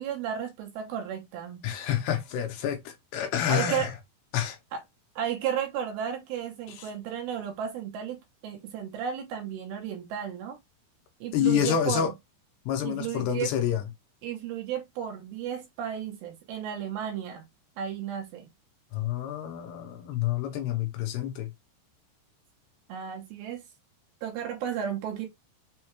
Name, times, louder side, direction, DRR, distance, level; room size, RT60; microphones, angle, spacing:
voice 1, 0.0-1.6 3.5-3.9 4.7-4.8 5.2-8.2 8.4-10.6 11.2-12.0 12.8-13.5 14.2-17.5 17.8-18.5 22.9-23.6 24.2-25.3, right 9 dB, 75° right, 2.3 m, -33 dB
voice 2, 1.6-3.9 4.3-4.6 6.7-6.9 11.3-12.1 12.7-13.8 18.9-21.5, left 9 dB, 80° left, 2.5 m, -28 dB
6.4 x 2.2 x 2.9 m
omnidirectional pair, 4.9 m